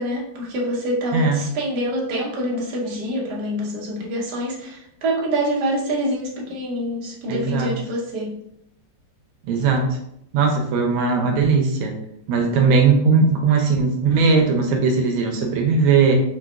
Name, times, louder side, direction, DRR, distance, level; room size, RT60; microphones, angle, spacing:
voice 1, 0.0-8.3, right 1 dB, 60° right, -3 dB, 1.3 m, -26 dB
voice 2, 7.3-7.7 9.4-10.0 10.3-11.9 12.3-16.1, right 4 dB, 90° right, 2 dB, 1.4 m, -18 dB
4.7 x 2.2 x 2.3 m, 0.75 s
omnidirectional pair, 2.1 m